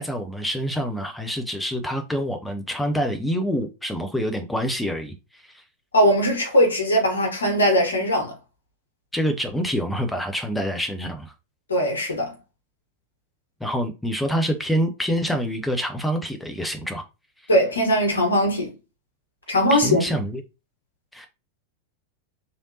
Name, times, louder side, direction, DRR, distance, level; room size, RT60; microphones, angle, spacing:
voice 1, 0.0-5.6 9.1-11.3 13.6-17.0 19.7-20.4 21.1-21.3, equal, 5° left, 0.6 m, -26 dB
voice 2, 5.9-8.3 11.7-12.3 17.5-18.7 19.5-20.0, equal, 75° left, 1.3 m, -20 dB
3.2 x 2.7 x 2.7 m
figure-of-eight pair, 90°, 0 cm